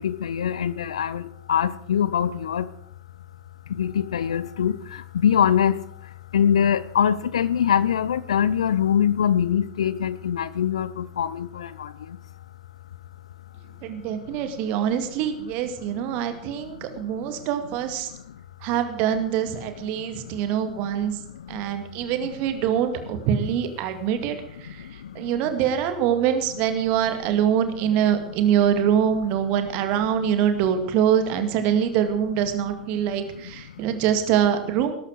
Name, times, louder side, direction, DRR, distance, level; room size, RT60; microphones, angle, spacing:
voice 1, 0.0-2.7 3.7-12.2 14.1-14.9 15.9-17.5 18.1-18.4 19.8-22.3 24.1-25.5 28.2-28.3 29.5-29.6 32.9-33.9, left 8 dB, 70° left, 18 dB, 0.7 m, -25 dB
voice 2, 13.8-18.1 18.6-21.2 21.5-34.9, right 9 dB, 45° right, 8 dB, 2.2 m, -24 dB
20.0 x 11.5 x 4.8 m, 0.68 s
figure-of-eight pair, 80°, 3 cm